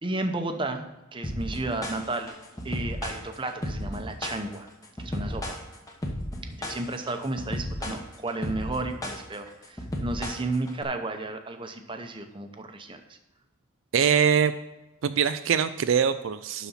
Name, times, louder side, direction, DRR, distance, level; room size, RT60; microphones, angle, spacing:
voice 1, 0.0-2.3 2.6-4.7 5.0-5.6 6.4-13.0, right 2 dB, 25° right, 6 dB, 0.8 m, -33 dB
sound 1, 1.2-10.8, left 1 dB, 15° left, 1.1 m, -34 dB
voice 2, 13.9-14.5 15.0-16.7, right 7 dB, 65° right, 11 dB, 0.4 m, -23 dB
11.5 x 4.2 x 5.6 m, 1.0 s
head